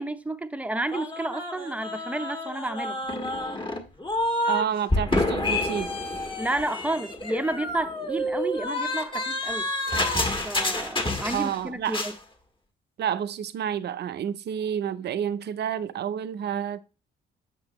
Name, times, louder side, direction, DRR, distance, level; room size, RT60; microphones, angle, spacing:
voice 1, 0.0-3.0 6.4-9.7 10.4-12.1, right 2 dB, 5° right, 0.6 m, -31 dB
sound 1, 0.9-4.6 4.9-11.6 11.8-12.2, left 1 dB, 25° left, 1.5 m, -29 dB
voice 2, 4.5-5.9 11.3-12.0 13.0-16.8, right 9 dB, 55° right, 0.5 m, -29 dB
7.8 x 6.6 x 3.0 m
cardioid pair, 90°, 20 cm